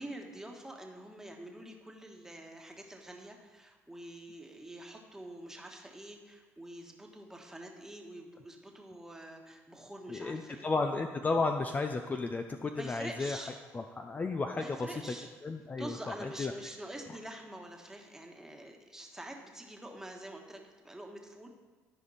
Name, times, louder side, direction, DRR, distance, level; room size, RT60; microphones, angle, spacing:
voice 1, 0.0-10.7 12.8-13.6 14.5-15.3 15.8-21.5, right 1 dB, 10° right, 2 dB, 1.4 m, -46 dB
voice 2, 10.1-13.4 13.7-15.0 15.4-16.5, left 3 dB, 25° left, 6 dB, 0.5 m, -33 dB
13.0 x 5.1 x 4.2 m, 1.3 s
supercardioid pair, 75°, 6 cm